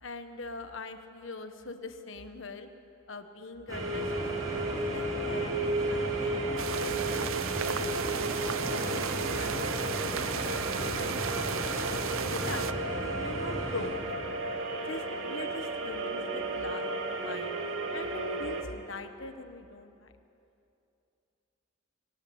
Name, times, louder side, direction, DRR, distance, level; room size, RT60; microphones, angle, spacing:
voice 1, 0.0-2.7 3.1-6.5 6.8-11.5 12.3-14.2 14.8-17.6 17.9-20.1, left 3 dB, 65° left, 8 dB, 1.3 m, -43 dB
sound 1, 3.7-13.9, equal, 15° right, 6.3 m, -37 dB
sound 2, 3.7-18.6, right 2 dB, 65° right, 2.3 m, -34 dB
sound 3, 6.6-12.7, right 7 dB, 80° right, 0.8 m, -35 dB
23.5 x 19.0 x 8.7 m, 2.7 s
head